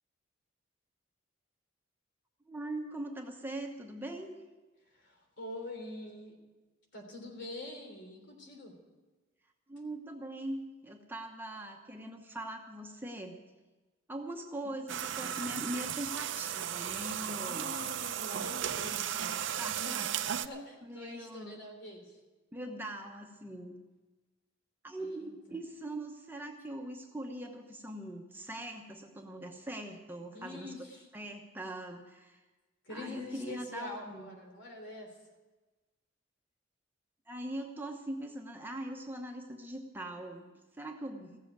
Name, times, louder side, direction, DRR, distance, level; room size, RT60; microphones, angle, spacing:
voice 1, 2.5-4.4 9.7-13.4 14.1-17.7 18.7-18.9 19.5-20.3 20.8-21.6 22.5-23.8 24.8-30.7 31.1-32.4 32.9-34.3 37.3-41.4, right 1 dB, 10° right, 2 dB, 0.9 m, -42 dB
voice 2, 4.9-6.4 6.9-8.7 17.4-19.0 19.8-20.0 20.4-22.2 25.0-25.3 30.3-31.1 32.8-35.1, left 2 dB, 60° left, 2 dB, 3.4 m, -45 dB
sound 1, 14.9-20.5, right 9 dB, 65° right, 0.6 m, -35 dB
15.5 x 7.7 x 9.1 m, 1.2 s
head